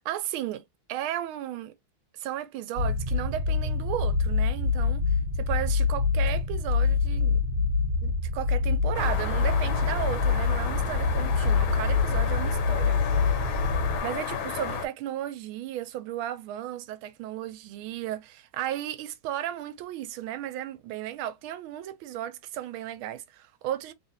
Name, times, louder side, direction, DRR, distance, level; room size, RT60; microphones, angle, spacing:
voice 1, 0.0-0.6 0.9-1.7 2.1-5.0 5.4-7.4 8.0-13.4 14.0-23.9, right 12 dB, 80° right, 1.4 m, -35 dB
sound 1, 2.8-14.0, left 4 dB, 35° right, 1.6 m, -25 dB
sound 2, 8.9-14.9, left 6 dB, 75° left, 1.5 m, -33 dB
3.4 x 2.5 x 2.7 m
omnidirectional pair, 2.3 m